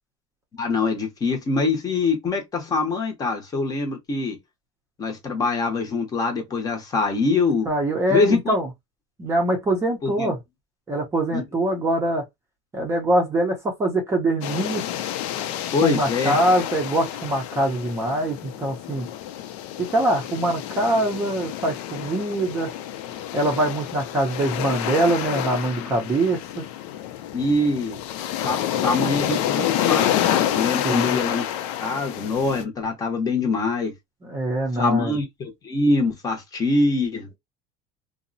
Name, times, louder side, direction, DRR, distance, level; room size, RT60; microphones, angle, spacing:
voice 1, 0.6-4.4 5.0-7.7 8.1-8.5 10.0-10.3 11.3-11.4 15.7-16.4 25.7-25.9 27.3-28.0 28.4-31.5 31.8-33.9 34.7-37.4, left 3 dB, 20° left, 0.7 m, -24 dB
voice 2, 7.7-8.7 9.2-10.4 10.9-12.2 12.7-14.8 15.8-19.1 19.9-22.7 23.3-26.6 30.8-31.2 34.2-35.2, right 1 dB, 15° right, 0.6 m, -23 dB
sound 1, 14.4-32.6, left 11 dB, 75° left, 0.5 m, -28 dB
2.7 x 2.0 x 2.6 m
cardioid pair, 160°, 16 cm